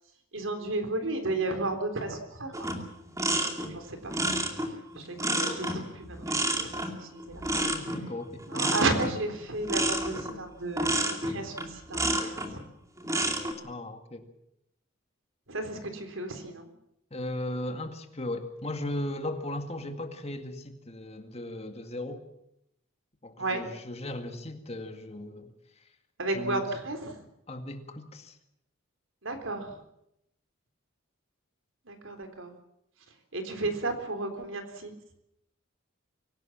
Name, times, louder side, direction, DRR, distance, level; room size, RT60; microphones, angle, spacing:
voice 1, 0.3-2.6 3.7-4.2 4.9-7.5 8.5-12.6 15.5-16.7 23.4-23.7 26.2-27.2 29.2-29.8 31.9-32.5 33.3-34.9, right 2 dB, 80° right, 7 dB, 3.7 m, -33 dB
sound 1, 2.5-12.5 13.0-13.5, right 1 dB, 15° right, 2.5 m, -30 dB
voice 2, 7.5-9.0 13.6-14.3 17.1-22.2 23.2-25.5 25.8-25.9 26.3-26.6 27.5-28.4, left 1 dB, 30° left, 6 dB, 2.0 m, -37 dB
25.0 x 17.0 x 7.4 m, 0.79 s
head